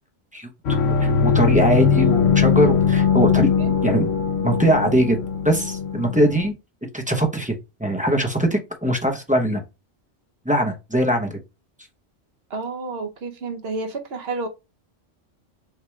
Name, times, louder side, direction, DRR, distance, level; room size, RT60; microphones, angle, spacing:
sound 1, 0.6-6.5, left 6 dB, 65° left, 0.9 m, -20 dB
voice 1, 1.0-3.5 3.8-4.1 4.4-5.2 5.4-6.5 6.9-9.6 10.4-11.4, equal, 10° right, 0.5 m, -21 dB
voice 2, 12.5-14.5, right 3 dB, 60° right, 0.9 m, -30 dB
6.5 x 2.3 x 3.1 m
omnidirectional pair, 1.3 m